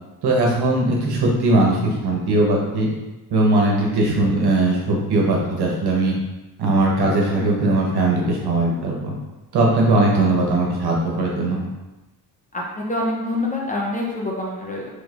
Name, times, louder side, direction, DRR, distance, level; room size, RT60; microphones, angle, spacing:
voice 1, 0.2-2.9 3.3-6.1 6.6-9.1 9.5-11.7, right 2 dB, 75° right, -2 dB, 1.2 m, -19 dB
voice 2, 12.9-14.9, left 2 dB, 20° left, -4 dB, 0.8 m, -26 dB
5.3 x 3.6 x 2.5 m, 1.1 s
wide cardioid pair, 155°, 39 cm